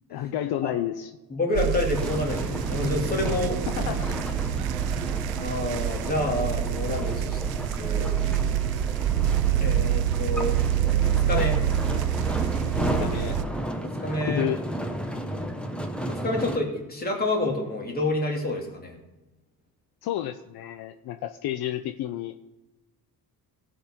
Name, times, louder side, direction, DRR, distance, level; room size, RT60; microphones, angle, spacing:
voice 1, 0.1-1.1 3.7-4.2 13.0-13.4 14.3-14.6 20.0-22.4, left 12 dB, 70° left, 9 dB, 0.6 m, -30 dB
voice 2, 1.3-3.9 5.4-7.4 7.8-8.2 9.5-10.6 11.0-11.6 13.8-14.5 16.1-19.0, left 2 dB, 25° left, 0 dB, 2.5 m, -28 dB
sound 1, 1.5-13.4, right 11 dB, 70° right, 0.6 m, -26 dB
sound 2, 1.9-16.6, equal, 5° left, 0.9 m, -33 dB
17.0 x 6.8 x 4.4 m, 1.0 s
cardioid pair, 135°, 39 cm